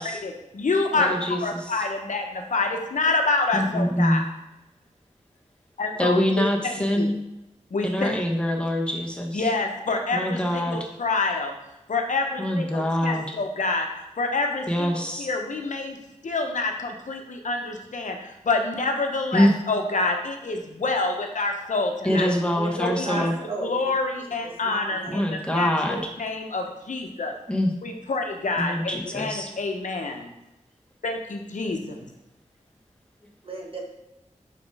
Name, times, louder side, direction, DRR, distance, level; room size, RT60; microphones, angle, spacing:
voice 1, 0.2-4.2 5.8-6.2 6.6-7.1 7.7-8.2 9.3-11.5 11.9-13.9 14.2-14.9 15.2-16.0 16.2-22.3 22.8-23.3 23.6-27.3 27.8-30.3 31.0-32.0, left 3 dB, 80° left, 3 dB, 0.9 m, -27 dB
voice 2, 0.9-1.8 3.5-4.2 6.0-7.1 7.8-9.5 10.1-10.8 12.4-13.3 14.7-15.3 19.3-19.5 22.0-23.3 25.1-26.1 27.5-27.7 28.6-29.5, equal, 10° left, 0 dB, 1.2 m, -24 dB
voice 3, 22.1-22.7 23.0-23.7 24.2-25.4 33.4-33.8, right 2 dB, 45° right, -1 dB, 1.7 m, -34 dB
5.1 x 5.1 x 4.8 m, 0.92 s
wide cardioid pair, 70°, 13 cm